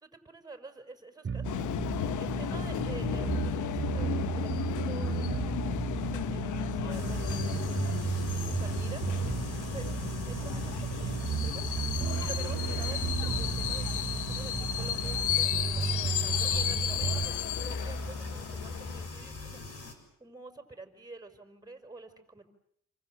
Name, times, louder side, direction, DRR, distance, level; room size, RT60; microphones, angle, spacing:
voice 1, 0.0-1.7 2.0-9.3 9.7-9.8 10.3-22.5, right 3 dB, 15° right, 6 dB, 5.6 m, -48 dB
sound 1, 1.2-17.3, right 6 dB, 40° right, 2.5 m, -34 dB
sound 2, 1.4-19.1, left 12 dB, 80° left, 1.0 m, -34 dB
sound 3, 6.9-19.9, left 3 dB, 55° left, 6.9 m, -40 dB
29.5 x 25.0 x 7.8 m, 0.70 s
cardioid pair, 90°, 30 cm